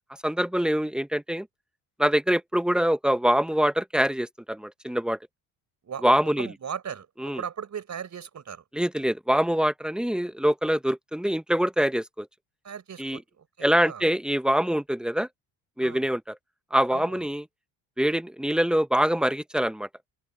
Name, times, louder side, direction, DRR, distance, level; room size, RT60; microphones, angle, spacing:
voice 1, 0.2-1.5 2.0-5.2 6.0-6.5 7.2-7.4 8.7-12.3 13.0-13.2 13.6-15.3 15.8-16.4 16.7-17.4 18.0-19.9, equal, ahead, 1.1 m, -24 dB
voice 2, 5.8-7.1 7.4-8.6 12.6-14.0 15.8-16.1 16.9-17.2, right 7 dB, 40° right, 5.0 m, -38 dB
open air
supercardioid pair, 75°, 41 cm